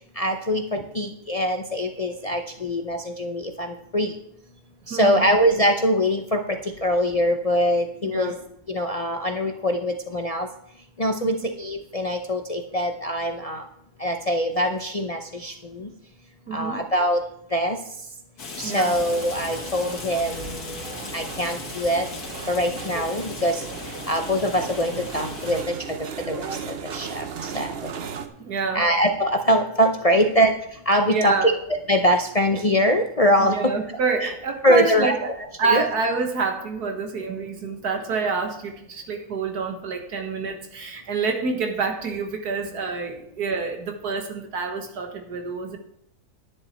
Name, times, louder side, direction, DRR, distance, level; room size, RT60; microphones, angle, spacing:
voice 1, 0.2-4.1 4.9-8.4 8.7-10.5 11.0-13.6 14.0-15.9 16.5-17.2 17.5-17.8 18.6-22.1 22.5-27.9 28.7-30.5 30.9-31.5 31.9-33.7 34.2-34.3 34.6-35.1 35.6-35.8, equal, 35° left, 4 dB, 0.6 m, -23 dB
voice 2, 4.9-5.3 8.0-8.3 11.2-11.5 16.5-16.8 18.6-19.0 28.4-28.8 30.2-30.3 31.1-31.5 33.4-35.3 35.6-45.8, right 4 dB, 85° right, 4 dB, 2.0 m, -27 dB
Rain, 18.4-25.6, left 4 dB, 80° left, 2.2 m, -37 dB
sound 1, 18.9-28.3, right 6 dB, 50° right, 0.9 m, -36 dB
10.5 x 10.0 x 4.3 m, 0.71 s
omnidirectional pair, 1.6 m